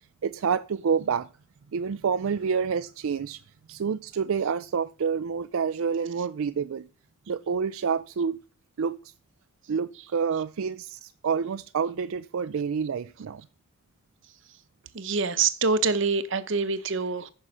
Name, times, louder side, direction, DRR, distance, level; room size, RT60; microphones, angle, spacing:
voice 1, 0.2-1.3 1.7-3.4 3.7-6.9 7.3-8.4 8.8-9.0 9.7-13.4, right 6 dB, 80° right, 0.4 m, -28 dB
voice 2, 14.9-17.3, right 4 dB, 60° right, 0.9 m, -25 dB
14.5 x 5.6 x 6.2 m
head